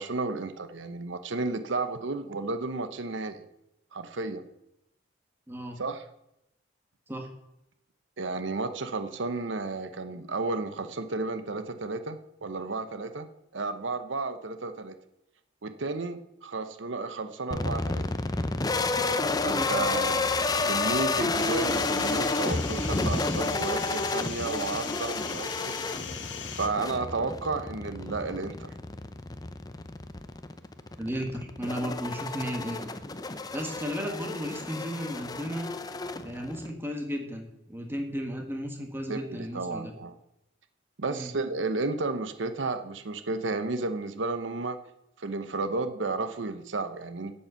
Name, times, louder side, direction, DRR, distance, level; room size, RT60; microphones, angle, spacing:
voice 1, 0.0-3.4 3.9-4.4 5.8-6.0 8.2-13.3 13.5-15.0 15.6-18.1 19.4-20.3 20.6-25.7 26.5-28.7 39.1-40.1 41.0-44.8 45.2-47.3, right 3 dB, 85° right, 10 dB, 0.8 m, -32 dB
voice 2, 5.5-5.8 7.1-7.3 19.4-19.7 31.0-32.8 33.5-35.7 36.2-39.9 41.1-41.3, equal, 10° right, 3 dB, 1.6 m, -34 dB
sound 1, 17.5-36.7, left 3 dB, 20° left, 0.6 m, -31 dB
sound 2, 21.3-26.7, left 7 dB, 80° left, 1.3 m, -39 dB
8.8 x 8.6 x 7.0 m, 0.84 s
head